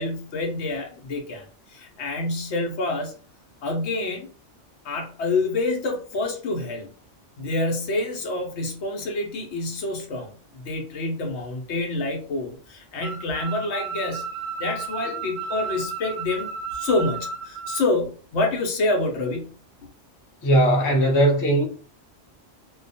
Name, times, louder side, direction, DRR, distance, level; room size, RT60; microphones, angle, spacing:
voice 1, 0.0-1.4 1.7-3.1 3.6-4.3 4.8-6.9 7.4-14.2 14.6-19.5, left 2 dB, 70° left, 0.9 m, -27 dB
sound 1, 13.0-17.9, right 5 dB, 65° right, 0.7 m, -33 dB
voice 2, 20.4-21.7, right 1 dB, 25° left, 0.5 m, -19 dB
2.2 x 2.2 x 2.6 m
omnidirectional pair, 1.2 m